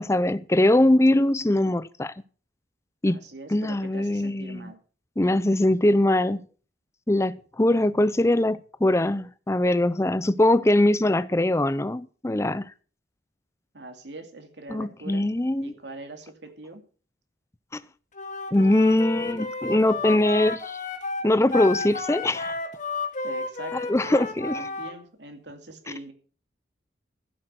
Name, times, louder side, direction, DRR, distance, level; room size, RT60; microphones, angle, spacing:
voice 1, 0.0-2.1 3.0-3.2 3.5-4.7 5.2-6.5 7.1-12.7 14.7-15.7 17.7-17.8 18.5-20.8 21.2-22.5 23.9-24.6, left 1 dB, 15° left, 0.5 m, -22 dB
voice 2, 3.1-4.8 13.7-15.3 15.6-16.8 23.2-26.1, right 2 dB, 70° right, 2.5 m, -42 dB
Wind instrument woodwind instrument, 18.1-24.9, left 4 dB, 45° left, 2.1 m, -32 dB
15.5 x 7.7 x 6.1 m
head